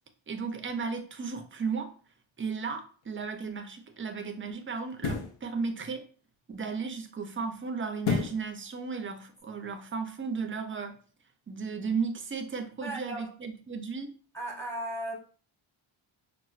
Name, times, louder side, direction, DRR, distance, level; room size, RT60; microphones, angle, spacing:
voice 1, 0.3-1.9 2.4-6.1 6.5-11.0 11.5-14.2, right 5 dB, 30° right, 0.3 m, -35 dB
sound 1, 3.0-3.2 4.9-5.4 8.0-8.5 8.9-9.0, left 4 dB, 80° left, 0.7 m, -30 dB
voice 2, 12.8-13.3 14.3-15.1, right 1 dB, 5° left, 0.8 m, -36 dB
4.2 x 2.0 x 2.3 m
wide cardioid pair, 120°, 49 cm